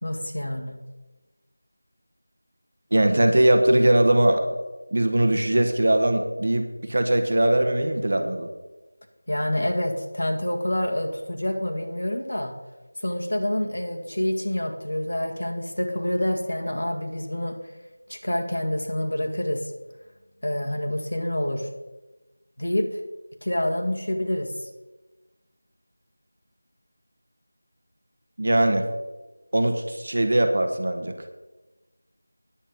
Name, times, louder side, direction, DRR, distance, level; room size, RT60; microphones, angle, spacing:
voice 1, 0.0-0.8 9.3-12.5 13.0-17.6 18.1-19.7 20.4-21.7 22.6-23.0 23.4-24.7, left 1 dB, 70° left, 3 dB, 1.9 m, -27 dB
voice 2, 2.9-4.4 4.9-8.5 28.4-28.8 29.5-31.1, right 1 dB, 35° right, 6 dB, 1.0 m, -20 dB
9.9 x 7.8 x 5.4 m, 1.1 s
figure-of-eight pair, 180°, 0 cm